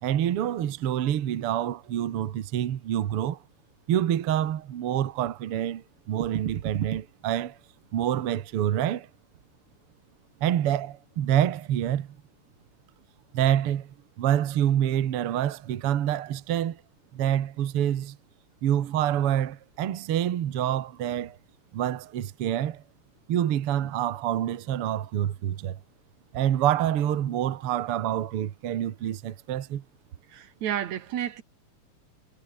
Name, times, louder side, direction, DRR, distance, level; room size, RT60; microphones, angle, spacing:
voice 1, 0.0-3.4 3.9-7.6 7.9-9.1 10.4-12.1 13.3-16.8 17.1-18.2 18.6-21.4 21.7-22.8 23.3-25.8 26.3-29.8, right 11 dB, 55° right, 2.0 m, -27 dB
voice 2, 30.3-31.4, right 10 dB, 75° right, 2.7 m, -31 dB
omnidirectional pair, 3.3 m